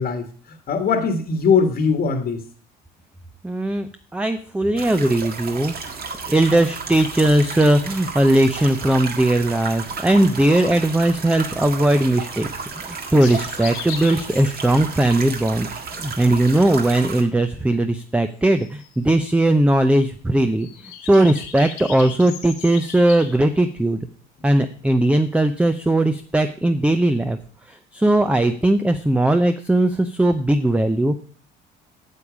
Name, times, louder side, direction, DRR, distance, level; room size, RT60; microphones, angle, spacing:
voice 1, 0.0-2.4, left 5 dB, 50° left, 5 dB, 1.4 m, -21 dB
voice 2, 3.4-5.7 6.3-20.7 21.0-24.0 24.4-27.4 27.7-31.2, right 1 dB, 5° right, 9 dB, 0.6 m, -19 dB
sound 1, 4.8-17.2, right 5 dB, 45° right, 1.7 m, -33 dB
sound 2, 13.2-15.0 18.6-19.0 20.6-23.4, left 9 dB, 85° left, 1.6 m, -37 dB
8.3 x 7.1 x 5.0 m, 0.44 s
supercardioid pair, 85°, 21 cm